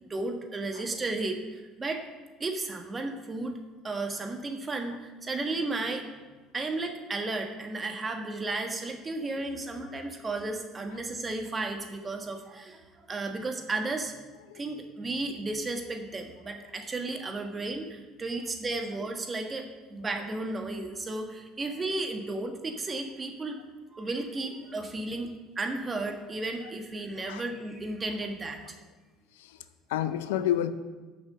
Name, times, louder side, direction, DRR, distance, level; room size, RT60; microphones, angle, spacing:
voice 1, 0.0-2.1 2.4-3.6 3.8-6.1 6.5-14.2 14.5-23.6 23.9-25.3 25.5-28.8, right 2 dB, 30° right, 4 dB, 1.4 m, -34 dB
voice 2, 29.3-30.7, left 11 dB, 85° left, 12 dB, 0.5 m, -31 dB
6.4 x 6.0 x 6.7 m, 1.3 s
hypercardioid pair, 75°, 0 cm